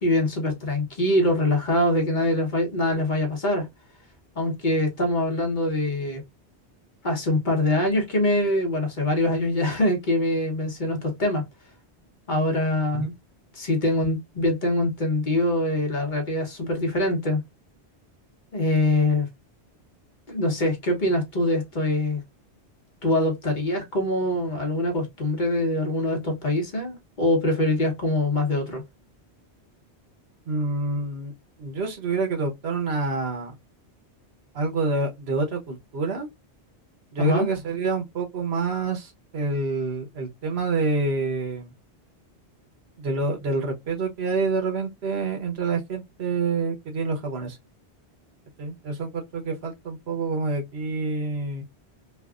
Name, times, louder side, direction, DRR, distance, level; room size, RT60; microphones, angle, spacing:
voice 1, 0.0-3.7 4.4-6.2 7.0-11.4 12.3-13.1 13.5-17.4 18.5-19.3 20.3-22.2 23.0-28.8 37.2-37.5, left 1 dB, 45° left, 1.1 m, -24 dB
voice 2, 30.5-31.3 31.6-33.6 34.5-36.3 37.1-41.7 43.0-47.6 48.6-51.6, right 3 dB, 70° right, 1.1 m, -27 dB
3.2 x 2.3 x 2.3 m
omnidirectional pair, 1.1 m